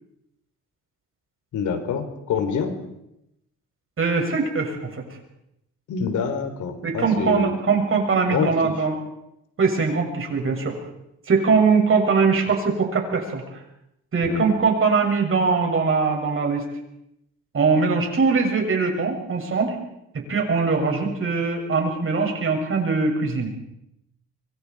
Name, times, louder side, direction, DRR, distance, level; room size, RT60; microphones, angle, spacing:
voice 1, 1.5-2.8 5.9-7.5 8.3-8.7 14.2-14.5, left 6 dB, 75° left, 8 dB, 3.7 m, -26 dB
voice 2, 4.0-5.0 6.8-9.0 9.6-10.8 11.3-13.4 14.1-16.7 17.5-19.7 20.1-23.5, right 4 dB, 45° right, 2 dB, 7.1 m, -21 dB
25.5 x 24.0 x 4.8 m, 0.83 s
cardioid pair, 90°, 30 cm